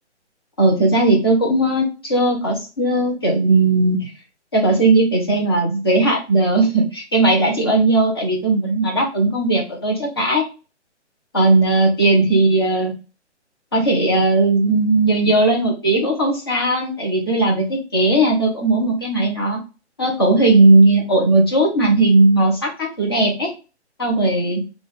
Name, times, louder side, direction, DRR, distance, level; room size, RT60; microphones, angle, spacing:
voice 1, 0.6-4.1 4.5-10.5 11.3-12.9 13.7-19.6 20.0-23.5 24.0-24.6, right 2 dB, 20° left, -3 dB, 0.6 m, -17 dB
3.7 x 2.4 x 4.0 m, 0.31 s
hypercardioid pair, 175°, 35 cm